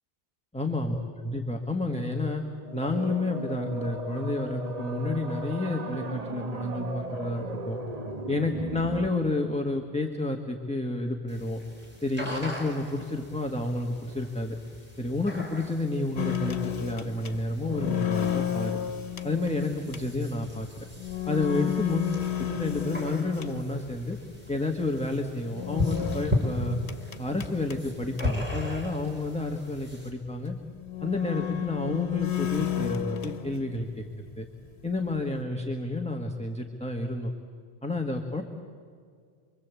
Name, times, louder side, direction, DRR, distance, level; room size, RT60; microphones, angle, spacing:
voice 1, 0.5-2.4 2.7-7.8 8.3-11.6 12.0-14.6 15.0-18.8 19.2-20.9 21.3-22.1 22.4-24.2 24.5-26.8 27.2-30.6 31.0-34.0 34.4-34.5 34.8-37.3 37.8-38.4, left 2 dB, 5° left, 3 dB, 1.4 m, -30 dB
sound 1, 2.6-9.1, right 3 dB, 40° right, 1.2 m, -36 dB
sound 2, 11.3-30.1, left 1 dB, 10° right, 5.4 m, -37 dB
sound 3, 16.2-24.0 25.5-28.5 28.9-29.0 29.2-29.3 30.1-30.2 30.8-34.0 34.3-35.4, left 10 dB, 90° left, 1.4 m, -32 dB
27.5 x 23.5 x 8.3 m, 2.1 s
omnidirectional pair, 1.1 m